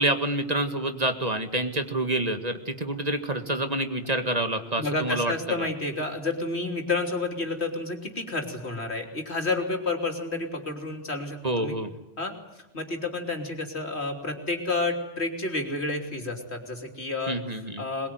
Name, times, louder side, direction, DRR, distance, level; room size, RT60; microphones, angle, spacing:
voice 1, 0.0-5.3 5.6-5.7 11.4-11.9 17.3-17.9, right 1 dB, 40° right, 7 dB, 2.0 m, -27 dB
voice 2, 4.7-11.8 12.2-18.1, left 3 dB, 90° left, 3 dB, 3.5 m, -30 dB
22.5 x 22.0 x 9.5 m, 1.0 s
omnidirectional pair, 1.1 m